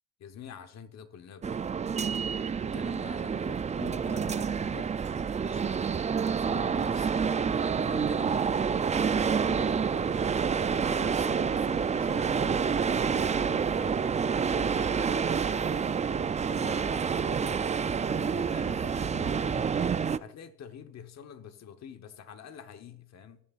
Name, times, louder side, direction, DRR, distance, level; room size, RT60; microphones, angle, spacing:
voice 1, 0.2-2.2 2.6-4.9 5.4-5.8 6.2-10.3 10.8-14.1 14.5-15.9 16.4-17.6 18.0-23.4, left 8 dB, 60° left, 1.1 m, -47 dB
sound 1, 1.4-20.2, right 6 dB, 25° right, 0.4 m, -28 dB
20.0 x 7.2 x 2.5 m
cardioid pair, 90°, 30 cm